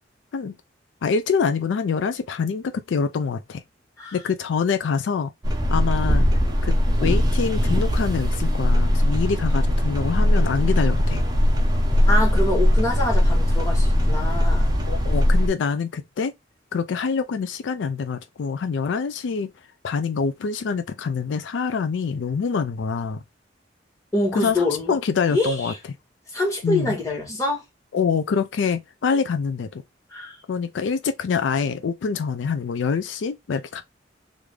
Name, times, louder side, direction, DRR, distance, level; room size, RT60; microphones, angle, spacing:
voice 1, 1.0-3.6 4.1-5.3 5.7-6.3 6.6-6.7 7.0-11.2 14.9-16.3 16.7-19.5 19.8-23.2 24.4-25.7 26.6-27.0 27.9-29.8 30.5-33.8, left 5 dB, 75° left, 0.4 m, -25 dB
sound 1, 5.4-15.5, left 1 dB, 20° right, 0.7 m, -20 dB
voice 2, 12.1-14.7 24.1-25.0 25.3-25.8 26.3-27.6 30.1-30.4, left 2 dB, 15° left, 1.5 m, -25 dB
3.2 x 2.6 x 3.3 m
head